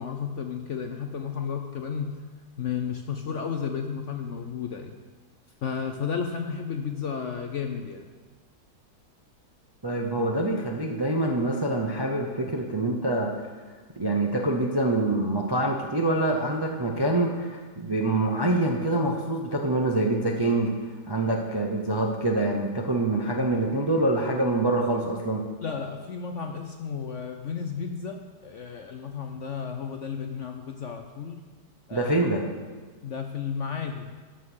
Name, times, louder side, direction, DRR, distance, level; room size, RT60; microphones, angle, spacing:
voice 1, 0.0-2.2 2.6-4.9 5.6-8.0 25.6-31.4 31.9-32.1 33.0-34.1, left 6 dB, 60° left, 5 dB, 0.8 m, -33 dB
voice 2, 9.8-13.3 14.0-20.7 21.1-25.4 31.9-32.4, right 2 dB, 25° right, 0 dB, 0.5 m, -25 dB
12.5 x 5.8 x 6.3 m, 1.4 s
omnidirectional pair, 1.8 m